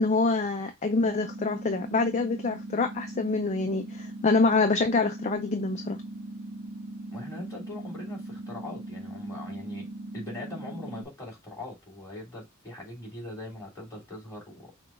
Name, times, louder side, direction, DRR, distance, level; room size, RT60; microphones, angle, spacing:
voice 1, 0.0-6.0, left 3 dB, 35° left, 0.4 m, -26 dB
sound 1, 1.0-11.0, right 1 dB, 45° right, 0.5 m, -40 dB
voice 2, 7.1-9.9 10.1-14.7, left 1 dB, 15° left, 2.7 m, -41 dB
5.8 x 2.3 x 3.6 m
head